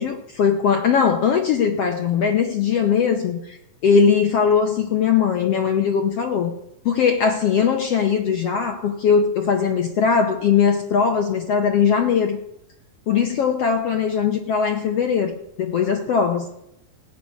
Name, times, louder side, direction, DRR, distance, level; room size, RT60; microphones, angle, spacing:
voice 1, 0.0-3.6 3.8-6.5 6.8-12.4 13.1-16.5, left 6 dB, 65° left, 3 dB, 1.7 m, -20 dB
16.0 x 6.0 x 9.6 m, 0.79 s
omnidirectional pair, 3.8 m